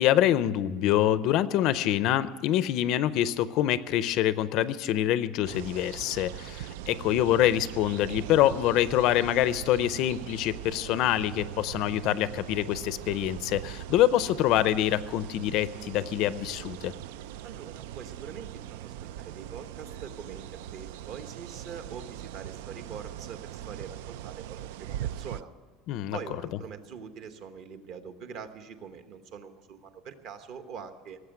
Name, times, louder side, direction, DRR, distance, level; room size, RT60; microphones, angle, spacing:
voice 1, 0.0-16.9 25.9-26.2, left 12 dB, 45° left, 15 dB, 0.5 m, -25 dB
sound 1, 5.4-25.4, right 12 dB, 90° right, 0.4 m, -41 dB
voice 2, 17.4-25.5 26.1-31.2, right 6 dB, 45° right, 9 dB, 1.0 m, -43 dB
18.5 x 7.9 x 9.0 m, 1.4 s
cardioid pair, 180°, 0 cm